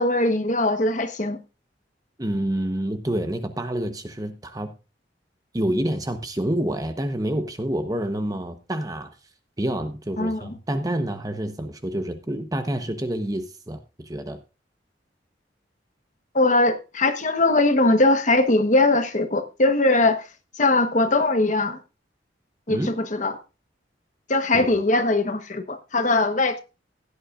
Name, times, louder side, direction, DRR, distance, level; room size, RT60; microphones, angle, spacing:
voice 1, 0.0-1.4 10.2-10.5 16.3-20.2 20.6-21.8 22.7-23.4 24.3-26.6, left 2 dB, 45° left, 1.2 m, -21 dB
voice 2, 2.2-4.7 5.5-9.1 9.6-14.4 22.7-22.9 24.5-24.7, right 1 dB, 20° right, 1.0 m, -28 dB
16.0 x 9.8 x 2.5 m
head